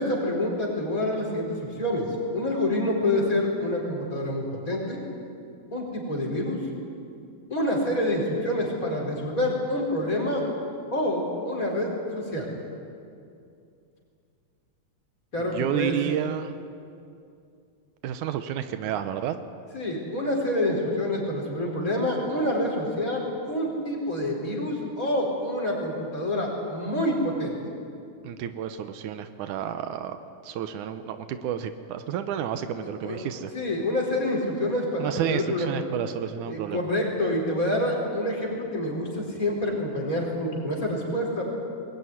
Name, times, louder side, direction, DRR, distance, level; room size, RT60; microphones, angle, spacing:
voice 1, 0.0-5.0 5.7-6.6 7.5-10.4 10.9-12.5 15.3-15.9 19.7-27.5 32.8-33.2 33.5-35.8 36.5-41.4, left 1 dB, 25° left, -2 dB, 5.1 m, -27 dB
voice 2, 15.4-16.6 18.0-19.4 28.2-30.2 30.4-33.5 35.0-36.9, right 9 dB, 90° right, 9 dB, 2.3 m, -31 dB
21.5 x 19.0 x 9.9 m, 2.5 s
omnidirectional pair, 3.5 m